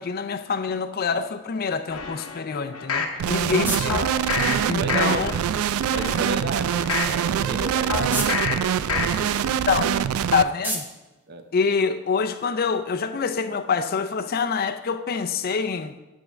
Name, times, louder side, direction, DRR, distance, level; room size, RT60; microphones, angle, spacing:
voice 1, 0.0-4.0 4.7-5.3 9.7-9.9 10.3-10.8 11.5-15.9, left 5 dB, 45° left, 10 dB, 0.4 m, -25 dB
sound 1, 1.9-3.2 3.9-4.6 4.9-5.4 5.8-7.2 7.9-8.6 8.9-9.4 9.8-9.9, left 4 dB, 90° left, 0.9 m, -28 dB
sound 2, 2.8-12.3, right 1 dB, 10° right, 0.8 m, -38 dB
sound 3, 3.2-10.4, right 8 dB, 80° right, 0.3 m, -24 dB
voice 2, 4.8-5.3 5.9-9.5 9.9-10.1 11.3-11.5, right 3 dB, 50° right, 7 dB, 0.7 m, -34 dB
10.0 x 3.6 x 6.5 m, 1.0 s
head